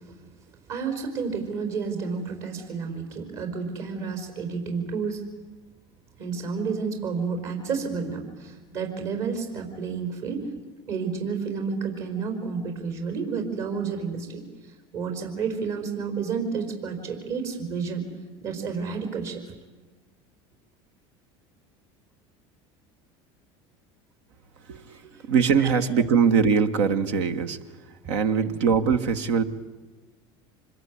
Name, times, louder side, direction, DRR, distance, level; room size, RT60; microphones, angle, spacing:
voice 1, 0.7-5.2 6.2-10.5 10.9-14.4 14.9-18.1 18.4-19.4 25.0-25.2 25.6-25.7, right 5 dB, 65° right, 4 dB, 4.9 m, -30 dB
voice 2, 24.7-27.6 28.1-29.4, right 6 dB, 85° right, 8 dB, 1.6 m, -22 dB
26.0 x 21.5 x 9.6 m, 1.3 s
supercardioid pair, 95°, 15 cm